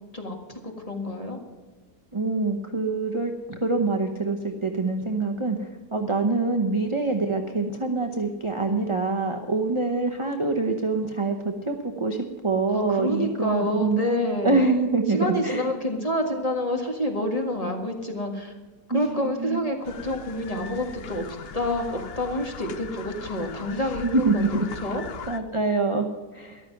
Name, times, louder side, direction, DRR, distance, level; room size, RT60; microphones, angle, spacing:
voice 1, 0.1-1.4 12.7-14.6 15.1-18.5 18.9-21.3 21.5-25.0, left 1 dB, 20° left, 3 dB, 1.8 m, -28 dB
voice 2, 2.1-14.0 14.4-15.6 18.9-19.6 24.1-24.6 25.3-26.1 26.3-26.6, right 3 dB, 25° right, 3 dB, 0.7 m, -25 dB
sound 1, 19.8-25.4, left 6 dB, 55° left, 0.7 m, -40 dB
14.0 x 11.5 x 5.9 m, 1.3 s
omnidirectional pair, 1.8 m